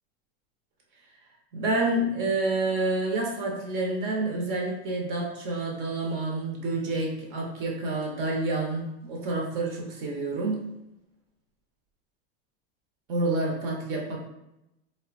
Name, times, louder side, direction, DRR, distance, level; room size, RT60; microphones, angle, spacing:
voice 1, 1.5-10.6 13.1-14.2, right 2 dB, 55° right, -1 dB, 0.8 m, -28 dB
3.3 x 2.1 x 2.4 m, 0.88 s
supercardioid pair, 150°, 33 cm